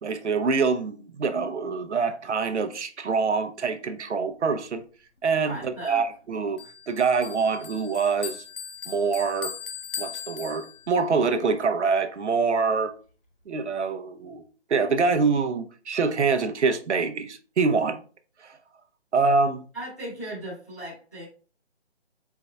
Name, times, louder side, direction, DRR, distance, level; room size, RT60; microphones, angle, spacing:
voice 1, 0.0-4.8 5.2-6.6 6.9-8.4 8.9-9.6 10.0-12.9 13.5-18.0 18.4-18.6 19.1-19.6, right 4 dB, 80° right, 0.7 m, -25 dB
voice 2, 5.4-6.0 19.7-21.3, right 1 dB, 15° left, 0.7 m, -37 dB
Bell, 6.6-11.1, left 7 dB, 55° left, 0.7 m, -39 dB
4.5 x 4.1 x 2.3 m
hypercardioid pair, 175°, 34 cm